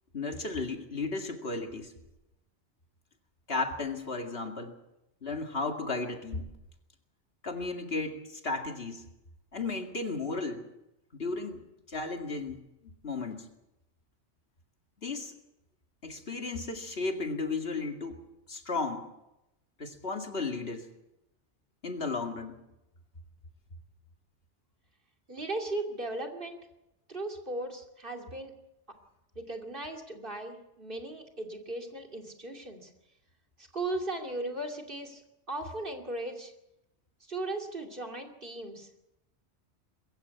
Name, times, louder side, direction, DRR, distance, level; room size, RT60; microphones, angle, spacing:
voice 1, 0.1-1.9 3.5-4.8 5.2-6.5 7.4-9.0 9.5-10.7 11.1-12.7 13.0-13.5 15.0-15.3 16.0-18.2 18.5-19.1 19.8-20.8 21.8-22.5, left 3 dB, 60° left, 4 dB, 2.4 m, -34 dB
voice 2, 25.3-26.7 27.1-28.5 29.4-32.9 33.6-35.2 35.5-36.5 37.3-38.9, right 2 dB, 50° right, 3 dB, 2.8 m, -37 dB
23.0 x 15.0 x 8.3 m, 0.89 s
omnidirectional pair, 1.2 m